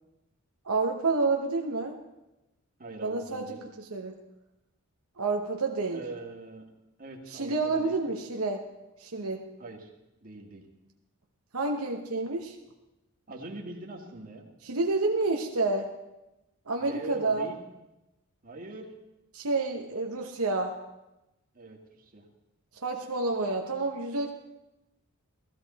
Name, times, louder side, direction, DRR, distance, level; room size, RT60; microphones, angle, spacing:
voice 1, 0.6-2.0 3.0-4.1 5.2-6.0 7.3-8.6 9.0-9.4 11.5-12.6 14.6-15.9 16.7-17.5 19.3-20.7 22.7-24.3, right 3 dB, 75° right, 2 dB, 1.0 m, -29 dB
voice 2, 2.8-3.6 5.9-6.6 7.0-8.0 9.6-9.9 10.2-10.6 13.3-14.5 16.8-17.6 18.4-18.9 21.5-22.2, right 2 dB, 40° right, 1 dB, 1.8 m, -42 dB
15.0 x 14.0 x 4.1 m, 0.95 s
head